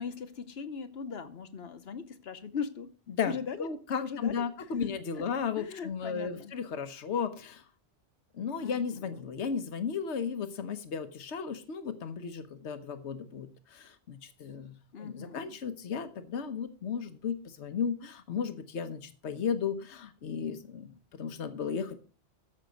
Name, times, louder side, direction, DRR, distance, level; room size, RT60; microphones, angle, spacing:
voice 1, 0.0-2.9 3.3-3.7 4.0-6.5 8.5-9.3 14.9-15.6, left 6 dB, 65° left, 1.1 m, -39 dB
voice 2, 3.1-7.6 8.3-22.0, left 6 dB, 85° left, 1.2 m, -35 dB
14.0 x 5.7 x 5.1 m
omnidirectional pair, 1.1 m